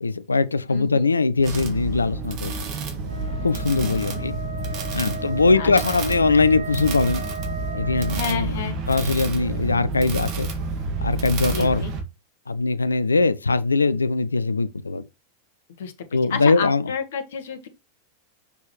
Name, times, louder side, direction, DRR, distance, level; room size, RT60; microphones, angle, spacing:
voice 1, 0.0-2.7 3.4-4.4 4.9-7.2 7.7-8.5 8.9-10.5 11.0-11.8 12.5-15.0 16.1-16.8, left 3 dB, 75° left, 0.5 m, -21 dB
voice 2, 0.7-1.1 3.8-4.2 5.6-5.7 8.1-8.8 11.5-11.9 15.8-15.9 16.3-17.7, left 7 dB, 60° left, 1.4 m, -30 dB
sound 1, 1.4-12.0, right 3 dB, 40° right, 1.8 m, -29 dB
Wind instrument woodwind instrument, 3.0-8.3, right 4 dB, 55° right, 1.3 m, -36 dB
6.9 x 6.2 x 3.1 m
figure-of-eight pair, 90°, 0 cm